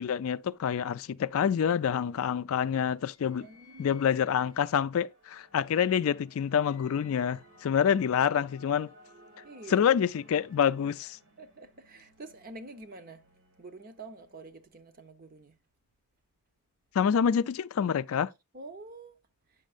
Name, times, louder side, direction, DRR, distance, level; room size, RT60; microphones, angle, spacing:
voice 1, 0.0-3.5 3.8-8.9 9.7-11.2 16.9-18.3, left 8 dB, 70° left, 0.3 m, -27 dB
sound 1, 1.2-14.9, left 1 dB, 90° right, 2.8 m, -59 dB
voice 2, 3.3-4.0 7.9-8.0 9.4-9.9 11.4-13.2 13.6-15.6 18.5-19.2, right 2 dB, 40° right, 0.8 m, -47 dB
8.9 x 6.3 x 2.4 m
head